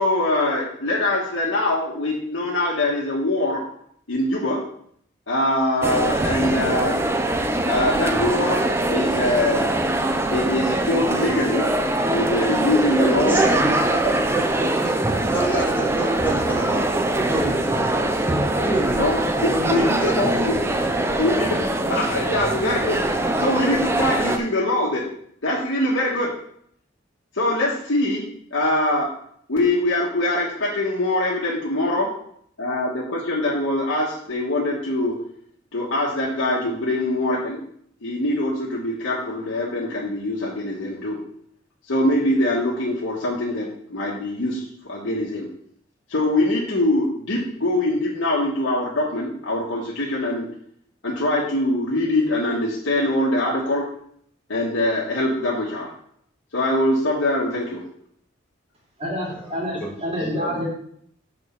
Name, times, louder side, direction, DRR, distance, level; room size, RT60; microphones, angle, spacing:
voice 1, 0.0-3.6 4.1-4.6 5.3-7.0 7.7-9.7 10.3-11.6 12.1-13.4 19.0-20.3 21.2-23.0 23.4-25.1 25.4-26.3 27.3-29.1 29.5-32.1 32.6-35.1 35.7-37.6 38.0-41.2 41.9-45.5 46.1-50.5 51.0-53.8 54.5-55.9 56.5-57.8, left 1 dB, 90° left, -5 dB, 1.4 m, -23 dB
sound 1, 5.8-24.4, right 1 dB, 15° right, 0.5 m, -23 dB
voice 2, 13.3-13.7 14.0-17.9 18.6-20.7 59.3-59.5 59.8-59.9 60.4-60.6, right 2 dB, 10° left, -6 dB, 2.1 m, -27 dB
voice 3, 59.0-60.7, equal, 30° right, -3 dB, 2.5 m, -27 dB
6.2 x 4.5 x 5.9 m, 0.66 s
head